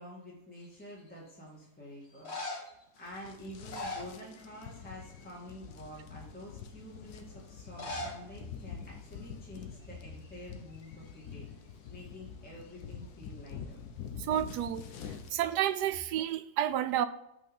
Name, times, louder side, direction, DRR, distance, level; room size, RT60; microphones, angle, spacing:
voice 1, 0.0-2.6 3.0-13.8, equal, 5° left, -5 dB, 1.9 m, -48 dB
sound 1, 0.6-1.1 2.0-2.8 3.5-4.7 5.0-5.4 6.0-6.1 7.6-8.2 8.5-8.6 8.8-8.9 9.6-9.9 10.1-11.3 15.3-15.9, left 2 dB, 40° left, 1.9 m, -42 dB
sound 2, 3.0-15.4, left 7 dB, 75° left, 1.3 m, -46 dB
voice 2, 14.2-14.8 15.3-17.1, right 11 dB, 80° right, 12 dB, 1.2 m, -30 dB
8.4 x 4.8 x 5.4 m, 0.86 s
omnidirectional pair, 1.7 m